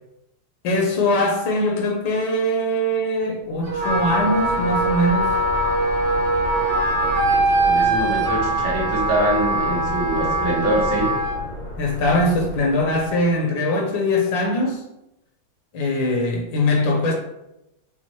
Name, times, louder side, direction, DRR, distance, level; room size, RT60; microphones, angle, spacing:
voice 1, 0.6-5.4 11.8-14.8 15.7-17.1, left 1 dB, 80° left, 0 dB, 1.6 m, -21 dB
sound 1, 3.5-13.3, left 1 dB, 55° left, 1.0 m, -34 dB
Wind instrument woodwind instrument, 3.7-11.4, right 2 dB, 45° right, 1.2 m, -22 dB
voice 2, 7.3-11.1, equal, 80° right, -3 dB, 1.9 m, -24 dB
5.6 x 2.6 x 3.0 m, 0.88 s
omnidirectional pair, 2.1 m